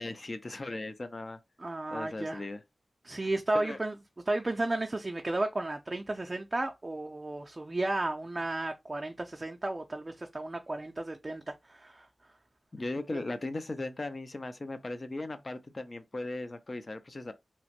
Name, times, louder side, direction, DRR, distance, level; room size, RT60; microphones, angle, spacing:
voice 1, 0.0-1.4 1.9-2.6 3.5-3.8 12.7-17.3, left 2 dB, 50° left, 0.5 m, -37 dB
voice 2, 1.6-2.4 3.0-4.0 4.3-12.1 13.1-13.2, right 2 dB, 40° right, 0.4 m, -33 dB
2.9 x 2.1 x 2.8 m
cardioid pair, 45°, 0 cm